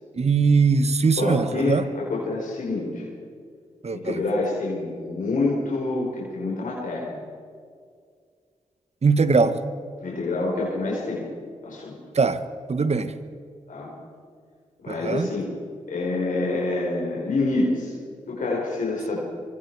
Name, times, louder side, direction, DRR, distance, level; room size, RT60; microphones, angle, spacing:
voice 1, 0.2-1.8 3.8-4.2 9.0-9.6 12.1-12.4 12.7-13.1 14.9-15.3, right 4 dB, 50° right, 11 dB, 1.3 m, -20 dB
voice 2, 1.2-3.0 3.9-7.1 10.0-11.3 11.6-12.0 13.7-13.9 14.8-15.5 15.9-17.9 18.3-19.2, left 2 dB, 75° left, -4 dB, 4.7 m, -27 dB
24.5 x 23.0 x 4.8 m, 2.1 s
cardioid pair, 50°, 14 cm